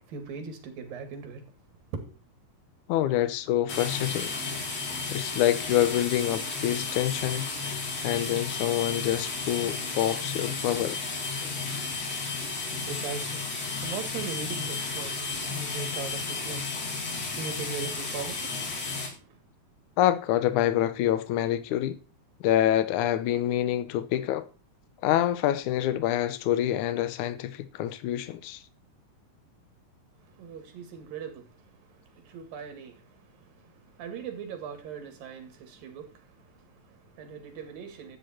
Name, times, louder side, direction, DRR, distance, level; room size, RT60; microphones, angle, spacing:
voice 1, 0.1-1.5 1.9-2.1 12.6-16.7 17.4-19.4 30.2-31.5 32.1-38.2, right 5 dB, 85° right, 3.7 m, -40 dB
voice 2, 2.9-4.3 5.1-7.5 8.0-11.0 20.0-22.0 22.4-24.5 25.0-28.6, left 12 dB, 75° left, 2.1 m, -26 dB
sound 1, 3.7-19.1, left 4 dB, 50° left, 4.2 m, -33 dB
12.5 x 8.6 x 4.3 m
omnidirectional pair, 3.9 m